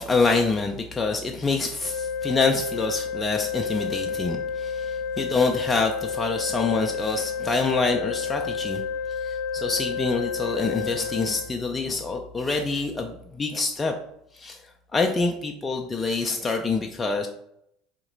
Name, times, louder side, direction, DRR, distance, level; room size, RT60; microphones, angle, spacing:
voice 1, 0.0-8.8 9.2-13.9 14.3-14.6 14.9-17.3, left 4 dB, 25° left, 3 dB, 0.4 m, -26 dB
sound 1, 1.8-11.5, left 6 dB, 70° left, 0.6 m, -30 dB
2.9 x 2.9 x 3.8 m, 0.75 s
hypercardioid pair, 70°, 0 cm